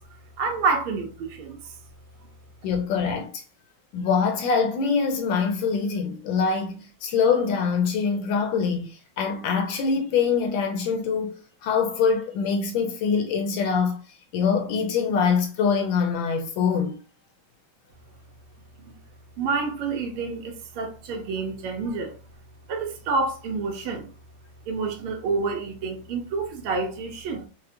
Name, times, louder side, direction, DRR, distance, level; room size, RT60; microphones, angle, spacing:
voice 1, 0.4-1.8 18.8-18.9 19.4-22.2 22.7-24.1 24.7-27.5, right 4 dB, 85° right, 1.6 m, -28 dB
voice 2, 2.6-3.4 3.9-14.0 14.3-17.0, left 5 dB, 75° left, 1.2 m, -24 dB
4.5 x 2.1 x 2.8 m
omnidirectional pair, 2.3 m